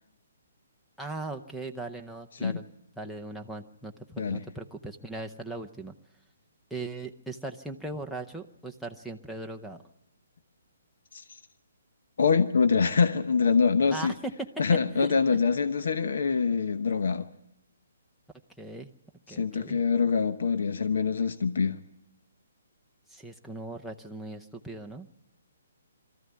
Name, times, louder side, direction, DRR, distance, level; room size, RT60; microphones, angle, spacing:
voice 1, 1.0-2.7 3.0-5.9 6.7-9.8 13.9-14.5 14.9-15.4 18.6-18.9 19.3-19.8 23.1-25.1, right 2 dB, ahead, 7 dB, 0.7 m, -39 dB
voice 2, 12.2-14.1 14.6-17.3 19.3-21.8, left 5 dB, 65° left, 10 dB, 1.0 m, -25 dB
23.0 x 14.0 x 9.5 m, 0.89 s
hypercardioid pair, 175°, 0 cm